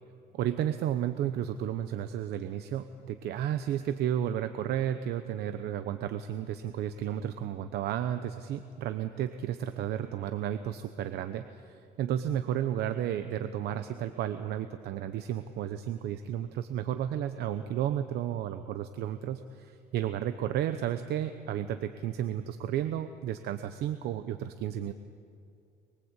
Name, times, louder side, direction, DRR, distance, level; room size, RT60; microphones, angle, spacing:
voice 1, 0.3-24.9, right 10 dB, 75° right, 9 dB, 0.9 m, -32 dB
23.5 x 22.0 x 8.2 m, 2.6 s
cardioid pair, 110°, 17 cm